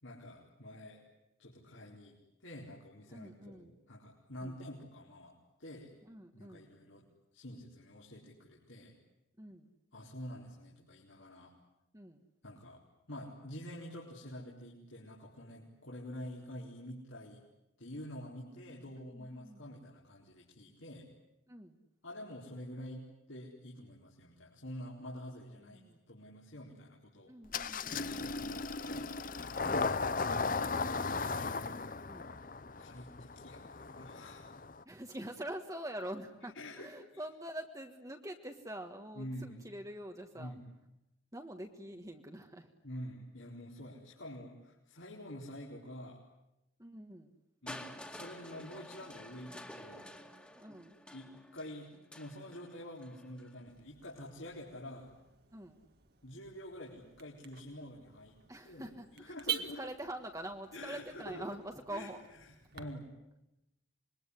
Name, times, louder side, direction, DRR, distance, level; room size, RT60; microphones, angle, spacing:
voice 1, 0.0-1.0 1.4-5.9 6.3-7.1 7.3-9.0 9.9-11.6 12.4-17.4 17.8-21.1 22.0-27.3 28.1-29.1 30.2-31.0 31.3-31.6 32.8-34.5 36.4-37.2 39.1-39.6 40.3-40.7 42.8-46.3 47.6-50.1 51.1-55.1 56.2-58.4 58.6-58.9 59.1-59.8 60.7-61.5 61.9-62.1 62.7-63.1, left 1 dB, 75° left, -4 dB, 4.4 m, -48 dB
voice 2, 3.1-3.7 4.4-4.6 6.1-6.7 9.4-9.7 11.9-12.2 18.6-19.6 21.5-21.8 25.6-26.0 27.2-28.4 32.1-32.3 34.8-40.5 41.3-42.7 46.8-47.3 50.5-51.0 55.5-55.8 58.5-62.2 62.8-62.9, right 1 dB, 15° right, 4 dB, 1.5 m, -45 dB
Engine starting, 27.5-34.8, left 4 dB, 40° left, 0.9 m, -36 dB
Crushing, 47.7-53.6 54.5-54.6, left 1 dB, 5° left, 2.3 m, -50 dB
Car / Alarm, 53.7-62.8, right 9 dB, 50° right, 2.0 m, -47 dB
26.5 x 22.5 x 9.9 m, 0.91 s
head